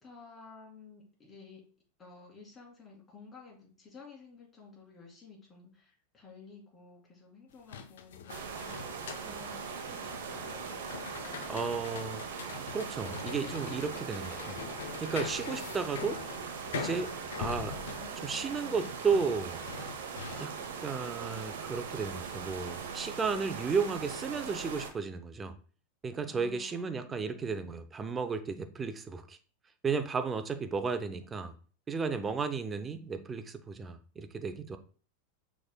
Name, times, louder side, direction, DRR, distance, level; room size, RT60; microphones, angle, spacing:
voice 1, 0.0-1.6 2.0-10.5 17.8-18.9 26.2-27.7, left 4 dB, 20° left, 2.2 m, -53 dB
sound 1, 7.5-20.8, left 8 dB, 75° left, 0.4 m, -43 dB
sound 2, 8.3-24.9, right 6 dB, 70° right, 0.8 m, -40 dB
voice 2, 11.5-12.2 12.7-14.6 15.0-16.2 16.7-17.8 18.2-19.6 20.4-25.6 26.0-29.4 29.8-31.6 31.9-34.8, right 5 dB, 20° right, 0.6 m, -34 dB
6.1 x 3.5 x 2.2 m
hypercardioid pair, 95°, 0 cm